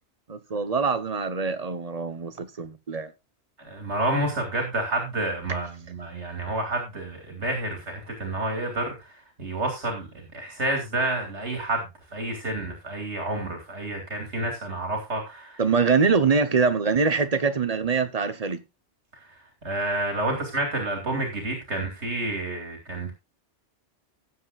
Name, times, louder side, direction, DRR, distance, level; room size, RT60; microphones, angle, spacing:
voice 1, 0.3-3.1 15.6-18.6, right 5 dB, 35° right, 1.0 m, -24 dB
voice 2, 3.6-15.6 19.6-23.1, right 2 dB, 75° right, 2.7 m, -29 dB
17.0 x 7.7 x 2.4 m
omnidirectional pair, 1.2 m